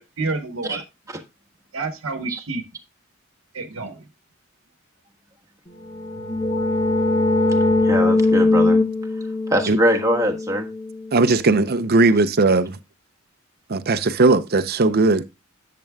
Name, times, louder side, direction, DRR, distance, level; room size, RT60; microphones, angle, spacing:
voice 1, 0.2-0.8 1.7-2.6 3.5-4.1, right 3 dB, 80° right, 1.1 m, -28 dB
sound 1, 5.8-11.4, left 2 dB, 25° left, 1.1 m, -21 dB
voice 2, 7.8-8.8 9.5-10.7, equal, 15° right, 1.4 m, -22 dB
voice 3, 11.1-12.8 13.7-15.3, right 3 dB, 50° right, 0.7 m, -18 dB
10.5 x 7.6 x 2.3 m
head